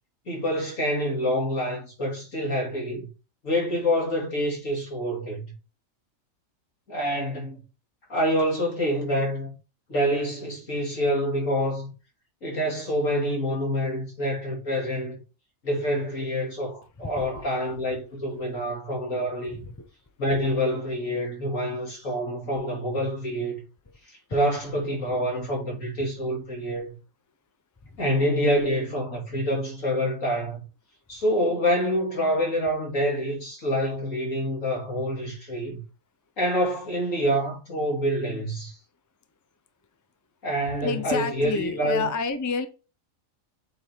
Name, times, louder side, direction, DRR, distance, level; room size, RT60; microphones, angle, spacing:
voice 1, 0.3-3.1 3.4-5.5 6.9-7.6 8.1-9.5 9.9-11.9 12.4-15.2 15.6-19.6 20.2-23.6 24.1-26.9 28.0-30.6 31.1-35.8 36.4-38.8 40.4-42.1, equal, 75° left, 3.1 m, -27 dB
voice 2, 17.0-17.4 17.9-18.0 19.5-19.9 27.8-28.0 40.8-42.7, left 4 dB, 20° left, 0.5 m, -30 dB
7.5 x 4.6 x 3.5 m
omnidirectional pair, 1.4 m